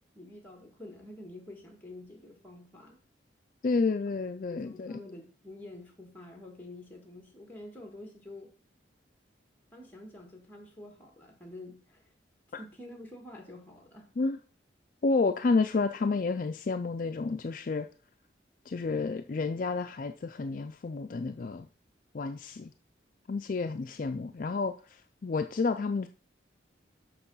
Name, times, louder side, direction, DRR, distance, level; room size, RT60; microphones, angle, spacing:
voice 1, 0.2-3.1 4.5-8.5 9.7-12.0 12.6-14.1 23.9-24.4, left 1 dB, 10° left, 2 dB, 1.9 m, -48 dB
voice 2, 3.6-5.0 14.2-14.4 15.0-17.9 18.7-21.7 22.1-22.7 23.3-26.1, left 4 dB, 45° left, 7 dB, 0.4 m, -30 dB
6.8 x 6.0 x 5.5 m, 0.40 s
head